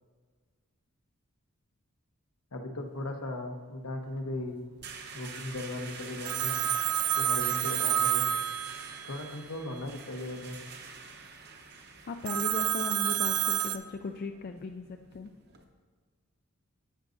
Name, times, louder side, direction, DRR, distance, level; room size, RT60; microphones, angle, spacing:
voice 1, 2.5-4.6 5.1-6.7 7.2-8.2 9.1-10.6, left 2 dB, 75° left, 3 dB, 1.0 m, -37 dB
sound 1, 4.0-15.6, right 5 dB, 45° right, 0.8 m, -47 dB
Telephone, 6.3-9.3 12.3-13.8, right 10 dB, 80° right, 0.5 m, -29 dB
voice 2, 12.1-15.3, left 4 dB, 40° left, 5 dB, 0.3 m, -37 dB
11.5 x 8.1 x 2.6 m, 1.5 s
head